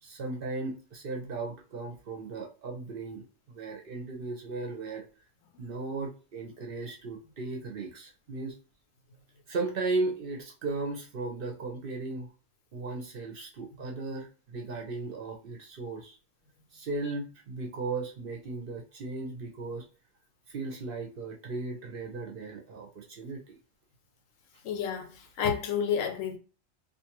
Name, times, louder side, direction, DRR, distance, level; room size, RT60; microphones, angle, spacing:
voice 1, 0.0-5.0 5.6-8.5 9.5-12.3 12.7-16.2 16.7-19.8 20.5-23.5, right 3 dB, 55° right, 0.7 m, -36 dB
voice 2, 24.6-26.4, left 7 dB, 85° left, 1.0 m, -30 dB
2.5 x 2.4 x 2.9 m
omnidirectional pair, 1.3 m